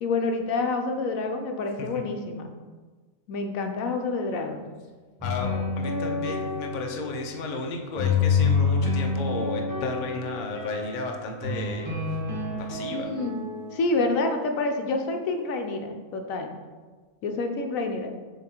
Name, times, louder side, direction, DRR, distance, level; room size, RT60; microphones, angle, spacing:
voice 1, 0.0-2.5 3.3-4.7 12.9-13.4 13.7-16.5 17.2-18.1, left 3 dB, 75° left, 4 dB, 1.1 m, -28 dB
voice 2, 5.2-12.2 12.6-13.1, left 3 dB, 45° left, 2 dB, 0.6 m, -33 dB
sound 1, 5.2-7.3 7.9-10.9 11.4-13.9, left 4 dB, 15° right, 1.1 m, -27 dB
7.7 x 3.0 x 4.4 m, 1.4 s
omnidirectional pair, 1.5 m